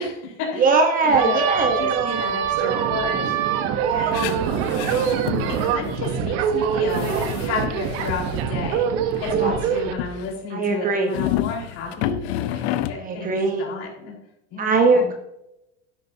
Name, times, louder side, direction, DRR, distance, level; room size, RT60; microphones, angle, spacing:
voice 1, 0.0-0.7 1.0-1.4 1.7-4.3 5.5-7.1 7.4-8.9 9.2-14.1 14.5-15.1, left 4 dB, 45° left, -1 dB, 4.6 m, -32 dB
voice 2, 0.6-1.9 9.3-9.5 10.5-11.1 13.0-13.7 14.6-15.1, right 3 dB, 25° right, 4 dB, 1.2 m, -20 dB
sound 1, 1.1-9.9, right 7 dB, 45° right, 1.1 m, -24 dB
sound 2, 4.1-6.1 6.4-6.5 6.8-8.4 9.2-10.3 11.1-13.0, left 13 dB, 65° left, 0.9 m, -30 dB
12.5 x 10.5 x 2.8 m, 0.86 s
supercardioid pair, 160°, 35 cm